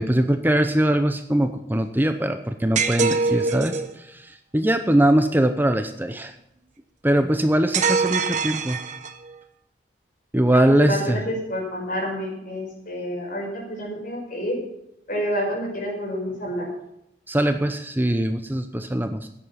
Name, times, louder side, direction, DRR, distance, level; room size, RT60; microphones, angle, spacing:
voice 1, 0.0-6.3 7.0-8.8 10.3-11.2 17.3-19.3, right 1 dB, 10° right, 8 dB, 0.7 m, -21 dB
sound 1, 2.8-3.9 7.7-9.3, right 5 dB, 45° right, 1.0 m, -24 dB
voice 2, 10.5-14.6 15.1-16.7, equal, 50° left, 0 dB, 5.3 m, -28 dB
14.0 x 9.9 x 5.7 m, 0.81 s
head